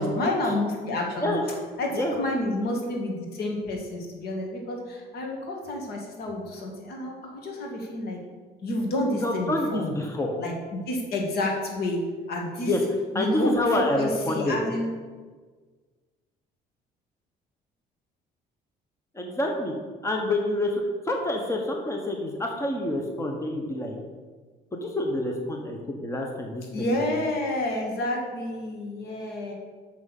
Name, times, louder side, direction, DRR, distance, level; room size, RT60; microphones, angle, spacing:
voice 1, 0.0-1.3 1.8-8.2 8.6-9.9 10.4-12.0 12.3-12.7 13.1-13.5 13.9-14.9 26.7-29.5, left 1 dB, 70° left, 1 dB, 2.0 m, -29 dB
voice 2, 9.2-10.3 12.6-12.8 13.1-14.6 19.1-19.7 20.0-20.7 21.0-23.9 24.7-26.6, left 1 dB, 15° left, 2 dB, 1.2 m, -27 dB
6.3 x 6.2 x 7.3 m, 1.4 s
cardioid pair, 110°, 17 cm